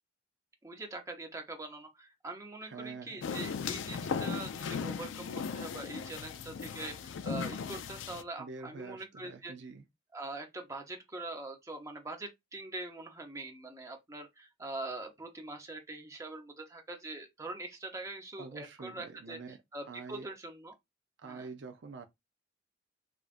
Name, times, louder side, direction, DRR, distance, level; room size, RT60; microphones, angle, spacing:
voice 1, 0.6-9.5 10.1-20.7 21.2-21.5, right 2 dB, 15° right, 0.8 m, -43 dB
voice 2, 2.6-3.2 8.4-9.8 18.4-19.6 19.9-20.3 21.2-22.0, right 4 dB, 65° right, 0.5 m, -46 dB
sound 1, 3.2-8.2, left 6 dB, 75° left, 0.4 m, -37 dB
4.9 x 2.4 x 2.5 m
head